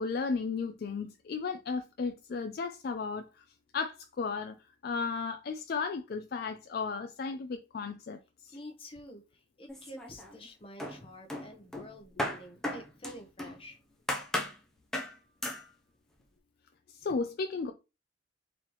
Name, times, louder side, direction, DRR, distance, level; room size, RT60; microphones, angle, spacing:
voice 1, 0.0-3.4 3.7-8.6 16.9-17.7, left 4 dB, 50° left, 0.3 m, -34 dB
voice 2, 8.5-13.8, equal, 30° left, 0.9 m, -49 dB
sound 1, 9.7-10.5 10.8-13.6 14.1-14.6 14.9-15.2 15.4-15.7, left 1 dB, ahead, 0.6 m, -36 dB
4.1 x 3.0 x 3.0 m
head